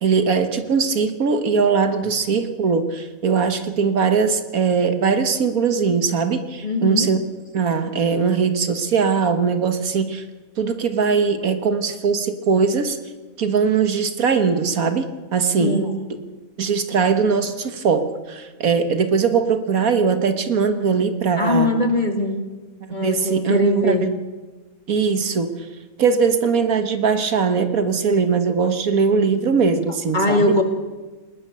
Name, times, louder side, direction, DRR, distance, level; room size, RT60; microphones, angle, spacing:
voice 1, 0.0-7.2 7.5-10.2 10.6-13.0 13.4-15.8 16.6-21.7 23.0-23.9 24.9-25.5 26.0-30.5, right 5 dB, 75° right, 9 dB, 1.9 m, -20 dB
voice 2, 6.6-7.1 15.6-16.0 21.4-22.4 22.9-24.0 30.1-30.6, left 1 dB, 30° left, 5 dB, 2.4 m, -20 dB
19.5 x 19.0 x 6.9 m, 1.3 s
omnidirectional pair, 1.5 m